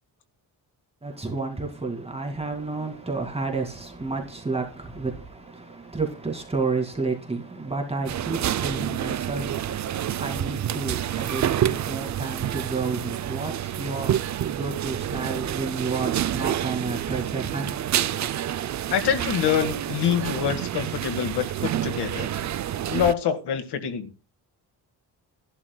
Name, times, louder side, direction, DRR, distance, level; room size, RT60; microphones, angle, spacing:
voice 1, 1.0-17.7, right 3 dB, 15° right, 2.2 m, -31 dB
sound 1, 8.1-23.1, right 11 dB, 45° right, 0.5 m, -28 dB
voice 2, 18.9-22.3 22.9-24.1, left 8 dB, 90° left, 1.9 m, -25 dB
14.0 x 11.5 x 2.2 m
wide cardioid pair, 140°, 39 cm